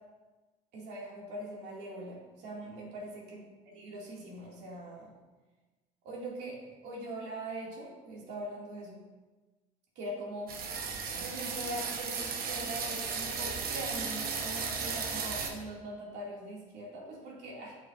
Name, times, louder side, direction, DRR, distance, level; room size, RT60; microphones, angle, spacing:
voice 1, 0.7-5.1 6.0-9.0 10.0-10.5 11.1-17.8, right 1 dB, 85° right, -4 dB, 2.2 m, -42 dB
sound 1, 10.5-15.5, right 5 dB, 60° right, 1.0 m, -35 dB
7.8 x 6.4 x 2.5 m, 1.2 s
cardioid pair, 110°, 17 cm